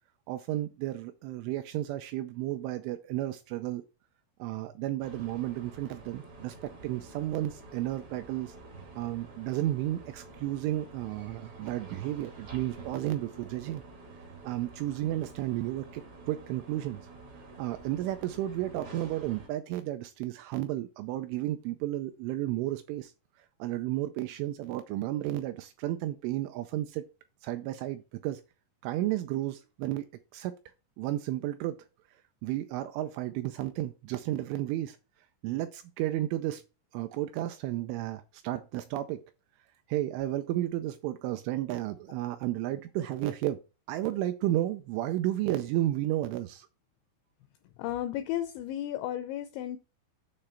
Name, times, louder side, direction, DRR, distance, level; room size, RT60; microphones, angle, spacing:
voice 1, 0.3-3.8 4.4-6.5 6.8-8.5 8.9-13.8 14.4-17.0 17.6-23.1 23.6-27.0 27.4-28.4 28.8-30.1 30.3-30.5 31.0-31.8 32.4-35.0 35.4-36.6 36.9-39.2 39.9-43.6 43.9-46.7, right 14 dB, 85° right, 2.8 m, -32 dB
sound 1, 5.0-19.5, right 3 dB, 70° right, 1.3 m, -49 dB
voice 2, 47.8-49.8, left 12 dB, 85° left, 2.6 m, -33 dB
8.7 x 3.2 x 5.6 m
omnidirectional pair, 5.8 m